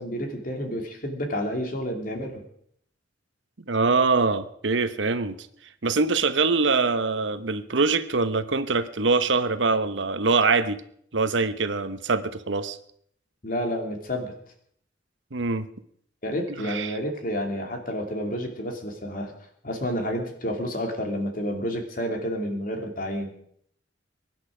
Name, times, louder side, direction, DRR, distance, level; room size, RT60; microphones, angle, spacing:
voice 1, 0.0-2.4 13.4-14.3 16.2-19.3 19.6-23.3, equal, 50° left, 3 dB, 2.7 m, -30 dB
voice 2, 3.7-5.5 5.8-10.8 11.1-12.8 15.3-15.7 16.6-17.0, right 4 dB, 80° right, 11 dB, 1.0 m, -24 dB
23.5 x 11.0 x 5.0 m, 0.67 s
head